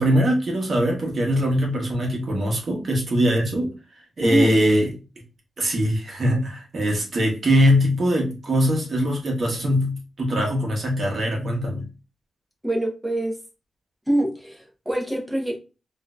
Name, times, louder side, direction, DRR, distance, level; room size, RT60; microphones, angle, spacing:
voice 1, 0.0-3.7 4.2-4.9 5.6-11.9, equal, 45° right, -1 dB, 1.1 m, -22 dB
voice 2, 4.2-4.6 12.6-13.4 14.1-15.6, right 1 dB, 5° right, -1 dB, 0.8 m, -24 dB
3.6 x 2.6 x 2.2 m, 0.31 s
wide cardioid pair, 140°, 0 cm